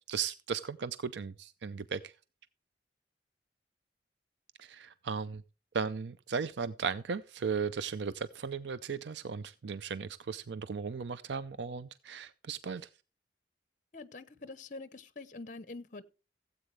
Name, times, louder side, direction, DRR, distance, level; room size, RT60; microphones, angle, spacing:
voice 1, 0.1-2.1 4.6-5.4 5.7-12.9, right 5 dB, 80° right, 0.5 m, -36 dB
voice 2, 13.9-16.0, left 3 dB, 45° left, 0.9 m, -45 dB
16.5 x 8.2 x 3.2 m
head